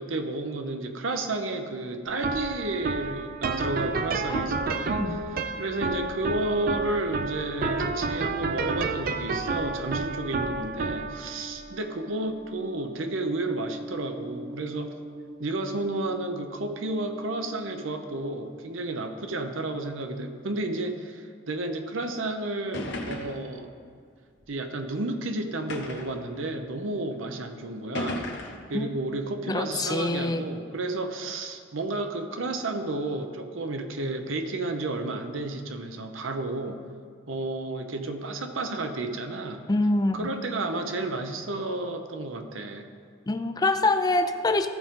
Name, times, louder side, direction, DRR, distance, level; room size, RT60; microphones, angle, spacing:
voice 1, 0.0-5.2 5.6-14.9 15.4-23.7 24.5-28.3 28.7-36.8 37.3-39.6 40.1-42.9, right 2 dB, 75° right, 6 dB, 0.7 m, -32 dB
sound 1, 2.1-19.3, right 3 dB, 45° right, 0.4 m, -32 dB
sound 2, 22.1-22.2 22.7-23.5 24.4-24.5 25.7-26.2 27.1-27.2 27.9-28.7, left 1 dB, 60° left, 1.1 m, -34 dB
voice 2, 29.5-30.5 39.7-40.3 43.3-44.7, left 2 dB, 20° left, 8 dB, 0.4 m, -25 dB
14.0 x 5.0 x 3.7 m, 2.2 s
head